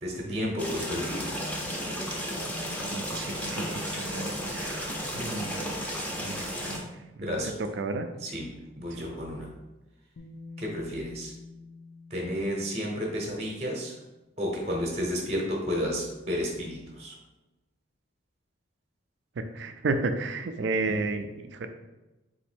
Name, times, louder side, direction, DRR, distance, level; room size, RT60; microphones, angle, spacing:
voice 1, 0.0-1.3 7.2-7.5 8.2-8.5 8.8-9.5 10.6-11.3 12.1-13.9 14.4-17.2, equal, 30° right, -1 dB, 0.8 m, -31 dB
sound 1, 0.6-6.8, equal, 5° left, 0.5 m, -33 dB
voice 2, 2.8-5.8 6.2-6.9 7.2-8.1 8.9-9.0 19.4-21.7, right 3 dB, 60° right, 7 dB, 0.4 m, -33 dB
Bass guitar, 10.2-14.1 15.2-15.3, left 3 dB, 75° left, 0.5 m, -48 dB
4.1 x 2.7 x 4.4 m, 1.1 s
head